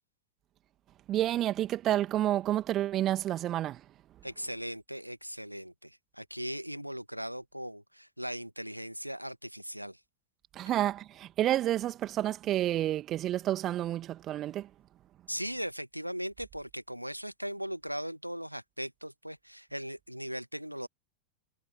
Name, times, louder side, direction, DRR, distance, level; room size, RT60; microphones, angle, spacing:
voice 1, 1.1-3.8 10.6-14.7, right 13 dB, 30° right, 2.4 m, -29 dB
voice 2, 4.2-10.0 15.3-20.9, equal, 90° right, 1.7 m, -39 dB
figure-of-eight pair, 90°, 0 cm